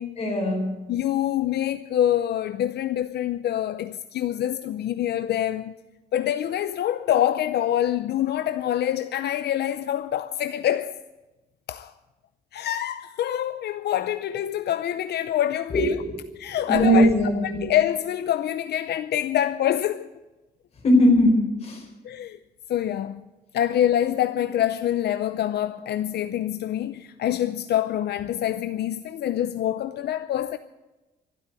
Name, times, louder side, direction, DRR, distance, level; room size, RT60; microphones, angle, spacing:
voice 1, 0.2-0.7 15.7-16.2 16.7-17.6 20.8-21.8, equal, 40° left, 4.6 m, -20 dB
voice 2, 0.9-5.7 6.1-11.0 11.7-11.9 12.5-16.0 16.4-17.1 17.4-20.1 22.0-22.4 22.7-23.3 23.5-30.6, left 11 dB, 75° left, 0.6 m, -25 dB
12.5 x 12.0 x 9.2 m
wide cardioid pair, 175°, 17 cm